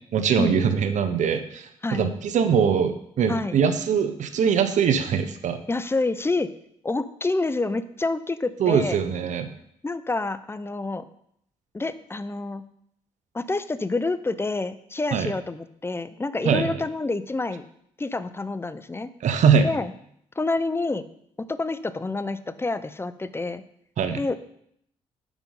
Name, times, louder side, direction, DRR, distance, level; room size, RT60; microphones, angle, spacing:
voice 1, 0.1-5.6 8.6-9.5 15.1-15.3 16.4-16.7 19.2-19.7 24.0-24.2, right 7 dB, 65° right, 9 dB, 0.6 m, -22 dB
voice 2, 5.7-6.5 6.8-9.0 9.8-11.0 11.7-12.6 13.3-17.7 18.0-19.1 19.6-19.9 20.4-21.1 21.4-23.6 24.2-24.4, left 3 dB, 20° left, 14 dB, 0.5 m, -28 dB
5.2 x 4.8 x 5.3 m, 0.71 s
supercardioid pair, 55°, 13 cm